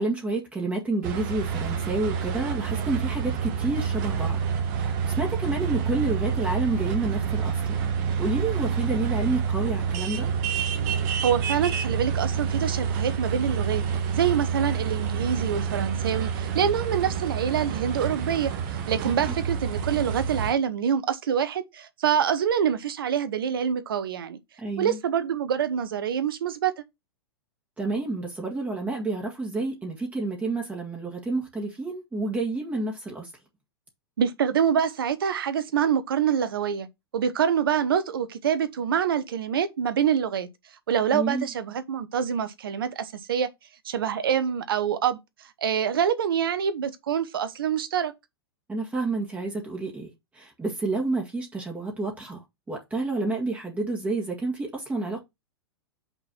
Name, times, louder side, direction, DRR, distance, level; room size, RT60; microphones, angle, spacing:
voice 1, 0.0-4.4 4.7-7.9 8.2-10.3 19.1-19.2 24.6-25.0 27.8-33.3 41.1-41.5 48.7-55.2, right 2 dB, 10° right, 1.8 m, -29 dB
sound 1, 1.0-20.5, right 7 dB, 45° right, 1.4 m, -28 dB
voice 2, 11.2-13.8 14.1-24.4 24.8-26.7 34.2-36.9 37.1-40.5 40.9-43.5 43.8-45.2 45.6-48.1, right 8 dB, 65° right, 1.0 m, -26 dB
5.7 x 4.0 x 6.0 m
figure-of-eight pair, 100°, 13 cm